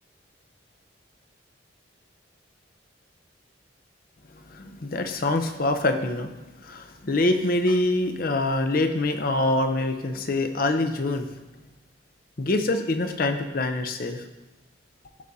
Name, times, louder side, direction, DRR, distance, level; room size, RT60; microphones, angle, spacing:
voice 1, 4.5-6.3 6.6-11.3 12.4-14.2, left 2 dB, 45° left, 7 dB, 0.6 m, -25 dB
14.0 x 5.0 x 2.8 m, 1.1 s
head